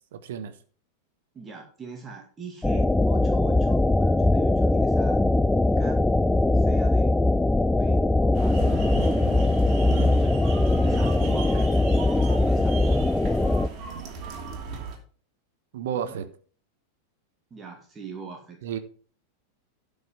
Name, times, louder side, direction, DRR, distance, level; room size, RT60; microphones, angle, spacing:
voice 1, 0.1-0.5 9.9-10.1 15.7-16.3 18.6-18.8, right 9 dB, 55° right, 1.2 m, -32 dB
voice 2, 1.3-5.2 5.8-6.0 6.5-7.1 7.7-9.4 9.9-10.3 10.8-11.7 12.3-13.1 16.0-16.1 17.5-18.6, right 5 dB, 20° right, 2.3 m, -42 dB
sound 1, 2.6-13.7, left 2 dB, 5° left, 0.4 m, -21 dB
sound 2, 8.3-15.0, right 5 dB, 35° right, 2.7 m, -36 dB
12.0 x 5.4 x 5.7 m
figure-of-eight pair, 90°, 0 cm